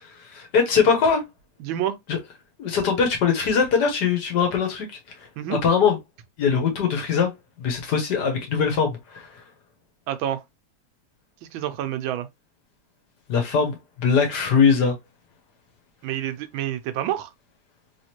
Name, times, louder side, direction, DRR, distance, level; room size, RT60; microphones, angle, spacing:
voice 1, 0.2-1.2 2.1-2.2 2.6-4.9 5.5-6.0 6.4-7.3 7.6-9.3 13.3-15.0, left 6 dB, 60° left, 1.5 m, -21 dB
voice 2, 1.6-1.9 5.4-5.6 10.1-10.4 11.5-12.3 16.0-17.3, right 11 dB, 85° right, 1.4 m, -28 dB
3.5 x 3.5 x 2.9 m
omnidirectional pair, 2.1 m